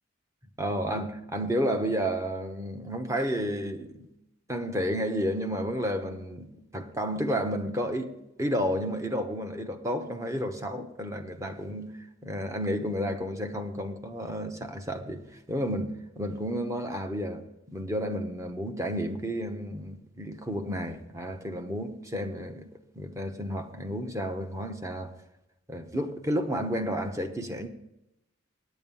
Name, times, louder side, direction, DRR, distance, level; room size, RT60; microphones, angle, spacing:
voice 1, 0.6-4.1 4.5-8.1 8.4-11.9 12.2-15.2 15.5-22.7 23.0-25.1 25.7-27.7, equal, 15° right, 0.9 m, -31 dB
9.2 x 9.0 x 6.9 m
head